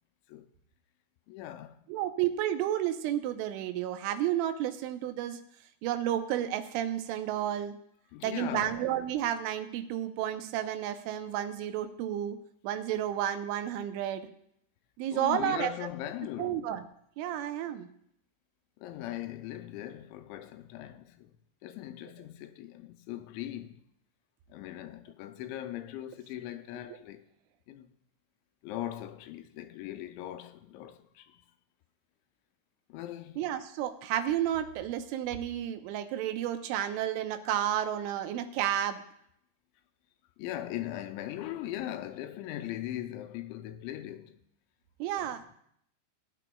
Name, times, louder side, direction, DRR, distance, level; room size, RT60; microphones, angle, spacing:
voice 1, 1.3-1.8 8.1-8.9 15.1-16.7 18.8-21.4 21.6-23.8 24.5-27.3 27.7-27.9 28.6-31.4 32.9-33.4 40.4-44.4 45.1-45.4, left 13 dB, 85° left, 2.8 m, -40 dB
voice 2, 1.9-5.4 5.8-7.7 8.2-12.4 12.6-14.3 15.0-15.7 16.4-16.8 17.2-17.9 33.4-39.0 45.0-45.4, right 11 dB, 90° right, 3.3 m, -31 dB
19.0 x 10.0 x 2.3 m
omnidirectional pair, 5.4 m